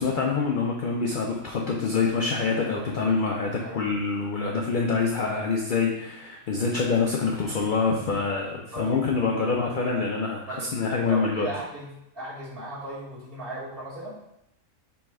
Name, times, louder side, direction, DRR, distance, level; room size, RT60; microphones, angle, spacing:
voice 1, 0.0-11.5, left 4 dB, 75° left, 0 dB, 0.4 m, -26 dB
voice 2, 3.6-3.9 8.7-9.0 10.5-10.7 11.1-11.9 12.1-14.2, right 1 dB, 40° right, -8 dB, 1.5 m, -36 dB
3.5 x 3.1 x 4.6 m, 0.82 s
omnidirectional pair, 1.5 m